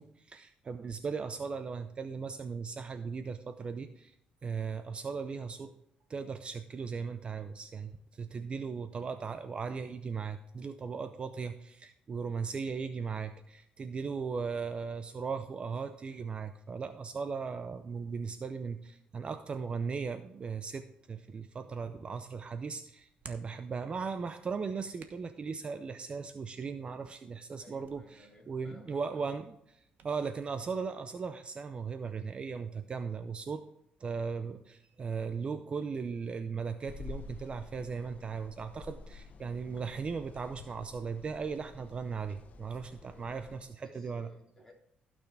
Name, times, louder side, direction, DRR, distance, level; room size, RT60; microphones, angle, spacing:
voice 1, 0.0-4.2 4.4-5.7 6.1-29.5 30.0-33.6 34.0-44.3, right 5 dB, 35° right, 10 dB, 0.6 m, -37 dB
Hands, 21.8-30.2, right 6 dB, 60° right, 1.2 m, -60 dB
voice 2, 27.6-29.4 43.1-44.7, left 2 dB, 10° left, -2 dB, 3.0 m, -58 dB
sound 1, 36.8-43.6, left 4 dB, 50° left, 0.9 m, -50 dB
16.0 x 6.2 x 3.4 m, 0.80 s
cardioid pair, 120°, 3 cm